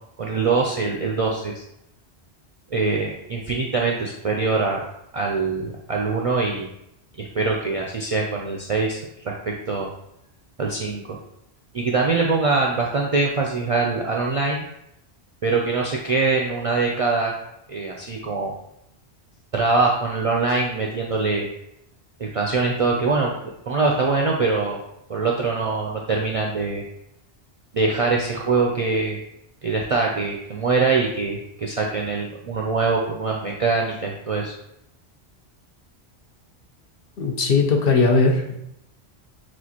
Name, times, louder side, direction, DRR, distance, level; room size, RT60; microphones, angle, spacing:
voice 1, 0.2-1.6 2.7-4.9 5.1-6.7 7.2-9.0 9.2-9.9 10.6-11.2 11.7-14.6 15.4-17.4 17.7-18.5 19.5-21.5 22.2-24.8 25.1-26.8 27.7-29.2 29.6-34.5, right 4 dB, 55° right, -1 dB, 0.4 m, -23 dB
voice 2, 37.2-38.6, left 3 dB, 65° left, 2 dB, 0.9 m, -19 dB
6.1 x 2.5 x 2.8 m, 0.80 s
omnidirectional pair, 1.1 m